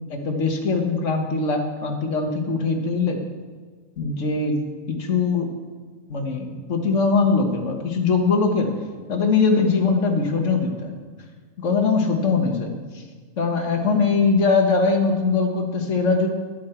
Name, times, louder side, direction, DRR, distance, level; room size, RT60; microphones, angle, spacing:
voice 1, 0.1-3.2 4.0-4.6 4.9-5.5 6.1-8.7 9.1-10.9 11.6-13.0 13.4-16.3, left 4 dB, 70° left, 4 dB, 1.6 m, -21 dB
11.5 x 10.5 x 4.4 m, 1.5 s
omnidirectional pair, 1.3 m